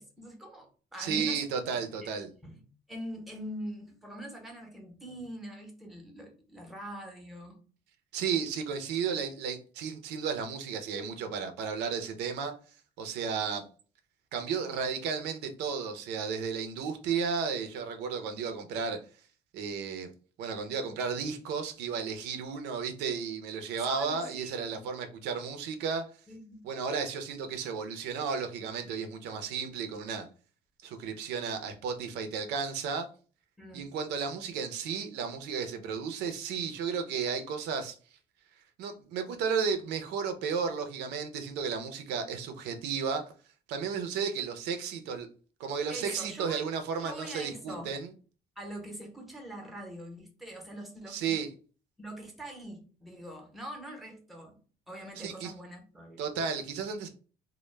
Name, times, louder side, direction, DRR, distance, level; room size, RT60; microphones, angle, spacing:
voice 1, 0.0-1.4 1.7-1.8 2.4-2.6 2.9-7.6 23.8-24.8 26.3-26.6 33.6-33.9 45.9-46.7 47.0-47.9 48.6-51.4 52.0-54.6 54.9-56.3, equal, ahead, 0.7 m, -43 dB
voice 2, 1.0-2.3 8.1-12.5 13.0-13.6 14.3-19.0 19.5-20.1 20.4-26.0 26.6-30.3 30.8-33.1 33.7-37.9 38.8-43.3 43.7-45.3 45.6-48.1 51.1-51.5 55.2-55.5 56.2-57.1, right 6 dB, 85° right, 0.5 m, -33 dB
2.1 x 2.1 x 3.1 m
cardioid pair, 110°, 17 cm